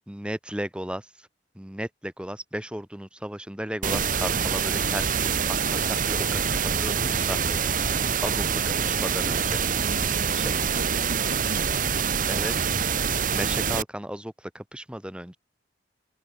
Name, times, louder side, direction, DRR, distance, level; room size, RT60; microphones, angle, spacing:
voice 1, 0.1-1.1 1.5-7.6 8.2-9.6 10.3-10.5 12.3-12.7 13.3-15.4, right 1 dB, 5° right, 1.1 m, -35 dB
sound 1, 3.8-13.8, right 6 dB, 50° right, 1.3 m, -25 dB
voice 2, 9.8-11.8, right 1 dB, 80° right, 5.6 m, -41 dB
head